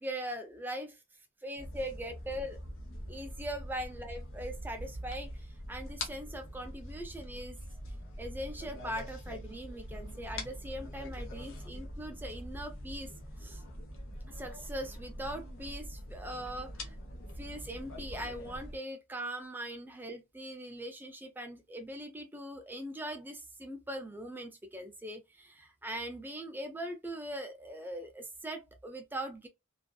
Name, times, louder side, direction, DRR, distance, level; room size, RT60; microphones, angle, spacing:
voice 1, 0.0-1.0 1.4-2.6 3.1-7.6 8.2-13.1 13.4-13.6 14.3-17.0 17.4-29.5, right 1 dB, 10° right, 0.4 m, -41 dB
sound 1, 1.6-18.8, equal, 60° left, 0.8 m, -44 dB
2.5 x 2.5 x 2.2 m
head